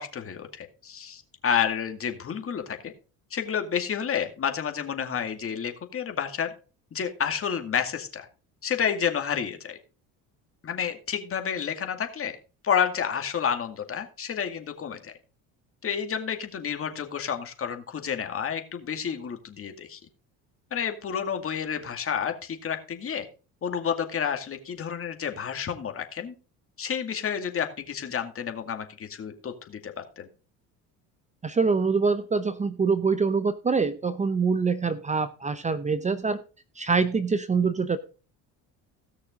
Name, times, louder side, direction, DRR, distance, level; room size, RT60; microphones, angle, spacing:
voice 1, 0.0-2.9 3.3-6.5 6.9-8.3 8.6-9.8 10.6-12.4 12.6-15.1 15.8-20.0 20.7-23.3 23.6-26.3 26.8-30.3, left 7 dB, 40° left, 6 dB, 2.2 m, -30 dB
voice 2, 31.4-36.4 36.8-38.0, right 4 dB, 20° right, 12 dB, 0.8 m, -25 dB
17.0 x 6.4 x 3.7 m, 0.34 s
supercardioid pair, 95°, 35 cm